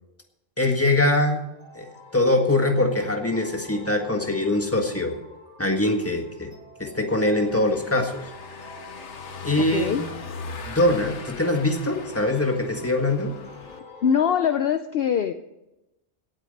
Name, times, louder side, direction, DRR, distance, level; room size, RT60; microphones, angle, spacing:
voice 1, 0.6-1.4 1.7-1.9 2.1-5.1 5.6-6.5 6.8-8.2 9.4-10.0 10.7-13.3, left 2 dB, 10° left, 3 dB, 1.7 m, -23 dB
sound 1, 1.4-14.6, left 4 dB, 45° left, 3.4 m, -46 dB
Car passing by / Engine, 7.1-13.8, left 4 dB, 80° left, 1.4 m, -40 dB
voice 2, 9.6-10.0 14.0-15.3, left 8 dB, 60° left, 9 dB, 0.8 m, -23 dB
17.0 x 9.2 x 5.4 m, 0.94 s
omnidirectional pair, 1.2 m